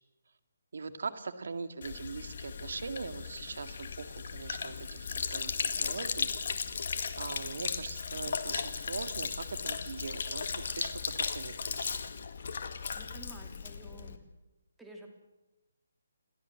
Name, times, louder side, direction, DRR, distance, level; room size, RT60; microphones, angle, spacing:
voice 1, 0.7-6.3 7.2-11.9, right 4 dB, 70° right, 10 dB, 2.1 m, -41 dB
Sink (filling or washing), 1.8-14.2, left 5 dB, 55° left, 2.0 m, -36 dB
voice 2, 12.9-14.2 14.8-15.1, right 2 dB, 5° right, 1 dB, 3.0 m, -51 dB
28.5 x 14.0 x 7.8 m, 1.0 s
hypercardioid pair, 155°, 0 cm